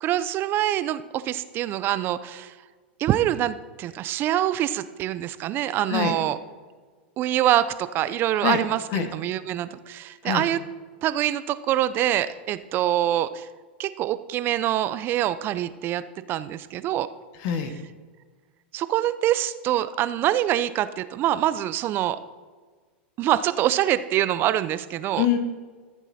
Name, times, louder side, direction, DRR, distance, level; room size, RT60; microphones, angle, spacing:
voice 1, 0.0-2.5 3.0-6.4 7.2-10.6 11.0-13.5 13.8-17.1 18.7-22.2 23.2-25.3, right 12 dB, 35° right, 15 dB, 0.5 m, -25 dB
voice 2, 17.4-17.8 25.2-25.4, left 9 dB, 55° left, 8 dB, 1.2 m, -24 dB
14.0 x 7.2 x 4.2 m, 1.5 s
hypercardioid pair, 125°, 6 cm